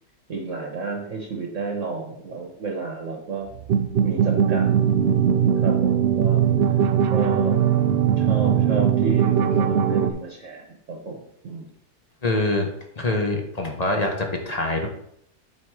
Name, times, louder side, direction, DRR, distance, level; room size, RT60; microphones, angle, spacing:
voice 1, 0.3-3.5 4.0-4.7 5.0-6.4 7.1-7.6 8.0-11.7, right 4 dB, 55° right, 1 dB, 1.3 m, -32 dB
sound 1, 3.5-10.1, right 8 dB, 90° right, 0.5 m, -20 dB
voice 2, 12.2-12.7 13.0-14.9, left 2 dB, 30° left, 2 dB, 1.0 m, -24 dB
8.4 x 4.2 x 4.8 m, 0.72 s
omnidirectional pair, 1.7 m